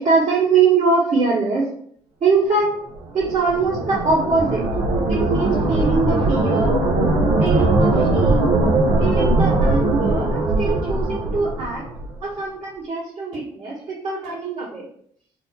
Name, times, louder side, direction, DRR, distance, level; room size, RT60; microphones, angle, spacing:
voice 1, 0.0-1.7 2.2-2.7 3.1-4.7 5.1-6.8 7.4-8.5 9.0-11.8 12.2-14.8, right 4 dB, 55° right, -9 dB, 1.3 m, -22 dB
sound 1, 3.0-12.2, right 2 dB, 75° right, 0.6 m, -20 dB
2.8 x 2.1 x 4.1 m, 0.63 s
hypercardioid pair, 50°, 14 cm